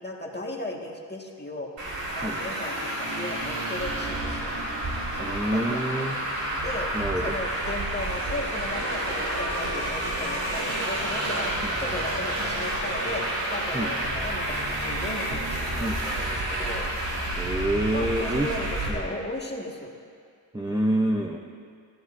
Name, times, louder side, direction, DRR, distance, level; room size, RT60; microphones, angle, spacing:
voice 1, 0.0-1.7 2.2-4.5 5.1-6.1 6.6-6.9 7.2-13.2 13.5-16.9 17.9-19.9, left 1 dB, 25° left, -1 dB, 1.8 m, -36 dB
Traffic noise roadway noise, 1.8-18.9, right 1 dB, 85° right, 3.2 m, -29 dB
voice 2, 5.2-6.2 6.9-7.4 11.6-11.8 13.7-13.9 15.8-16.0 17.4-18.5 18.9-19.2 20.5-21.4, right 1 dB, 10° right, 0 dB, 0.7 m, -27 dB
29.5 x 10.0 x 2.6 m, 2.2 s
wide cardioid pair, 80°, 43 cm